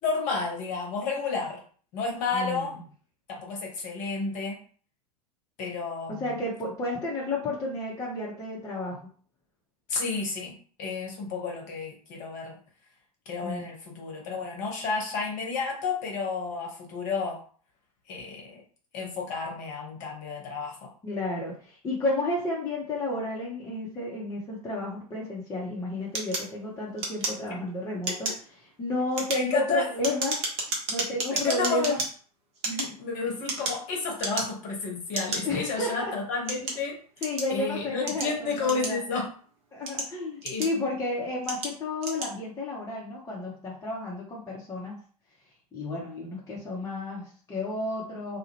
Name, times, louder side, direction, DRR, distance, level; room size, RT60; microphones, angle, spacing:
voice 1, 0.0-1.6 1.9-2.8 3.3-4.6 5.6-6.2 9.9-12.5 13.3-17.4 18.1-18.6 18.9-20.9 28.1-28.2 29.3-29.9 31.3-32.0 33.0-37.0 37.5-39.3 40.4-40.9, left 4 dB, 40° left, -1 dB, 1.0 m, -31 dB
voice 2, 2.3-2.8 6.1-9.1 13.4-13.7 21.0-28.3 28.6-30.5 30.9-32.0 32.6-32.9 35.4-36.1 37.2-38.3 38.6-39.0 39.7-45.0 45.7-48.4, left 2 dB, 15° left, -4 dB, 0.7 m, -32 dB
sound 1, 26.1-27.7 28.0-28.5 29.0-32.1 32.5-33.9 34.2-34.7 35.1-35.4 36.1-37.5 38.1-39.2 39.7-40.9 41.4-41.7 42.0-42.3, right 2 dB, 35° right, 0.8 m, -32 dB
2.4 x 2.0 x 3.0 m, 0.43 s
figure-of-eight pair, 85°, 20 cm